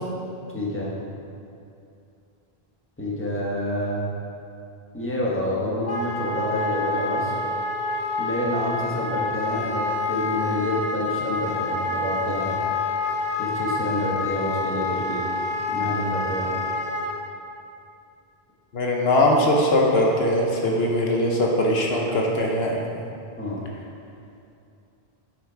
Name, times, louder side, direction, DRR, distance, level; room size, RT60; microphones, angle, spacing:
voice 1, 0.5-1.0 3.0-4.0 4.9-7.3 8.2-12.6 13.4-15.2 15.7-16.5 23.4-23.6, left 1 dB, 10° left, -4 dB, 1.2 m, -28 dB
Wind instrument woodwind instrument, 5.8-17.2, left 2 dB, 45° left, 0.8 m, -27 dB
voice 2, 18.7-22.8, left 1 dB, 75° left, -1 dB, 1.1 m, -21 dB
7.3 x 6.1 x 4.5 m, 2.6 s
omnidirectional pair, 1.1 m